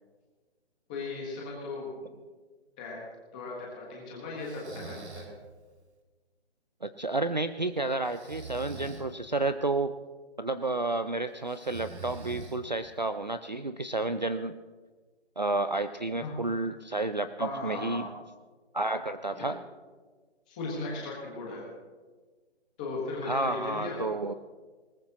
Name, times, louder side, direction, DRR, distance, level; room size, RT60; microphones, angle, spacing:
voice 1, 0.9-2.1 2.8-3.0 3.3-5.3 16.2-16.4 17.4-18.0 19.3-19.5 20.5-21.6 22.8-24.0, left 3 dB, 5° left, -3 dB, 1.3 m, -37 dB
Breathing, 4.4-5.4 8.0-9.1 11.5-12.9, right 4 dB, 70° right, 2.0 m, -43 dB
voice 2, 6.8-10.0 10.4-14.6 15.4-18.0 18.7-19.6 23.2-24.3, right 2 dB, 40° right, 10 dB, 0.4 m, -31 dB
20.5 x 19.0 x 2.9 m, 1.4 s
hypercardioid pair, 175°, 34 cm